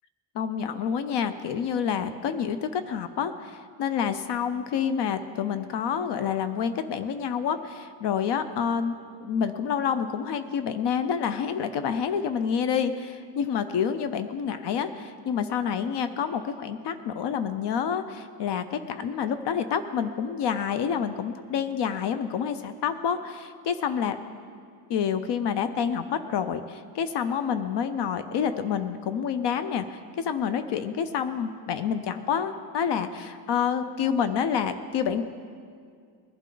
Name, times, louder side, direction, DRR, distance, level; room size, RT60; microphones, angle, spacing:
voice 1, 0.3-8.9 9.2-24.2 24.9-35.2, left 7 dB, 75° left, 10 dB, 0.7 m, -28 dB
20.5 x 11.5 x 3.9 m, 2.2 s
cardioid pair, 160°, 42 cm